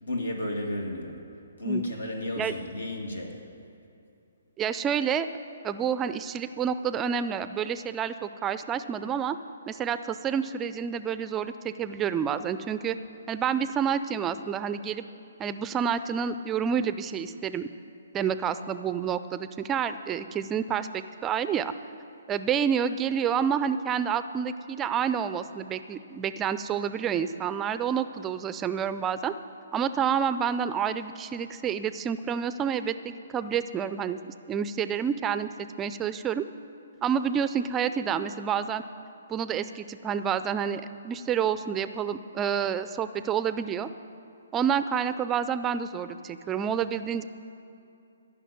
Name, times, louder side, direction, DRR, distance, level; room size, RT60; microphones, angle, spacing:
voice 1, 0.0-1.1 1.6-3.3, left 1 dB, 85° left, 1 dB, 2.3 m, -32 dB
voice 2, 4.6-5.3 5.6-9.4 9.7-13.0 13.3-15.0 15.4-17.7 18.1-21.7 22.3-29.3 29.7-33.0 33.3-34.2 34.5-35.5 35.8-36.4 37.0-38.8 39.3-43.9 44.5-47.2, right 7 dB, 15° right, 12 dB, 0.4 m, -28 dB
14.0 x 5.9 x 9.2 m, 2.7 s
hypercardioid pair, 140°, 0 cm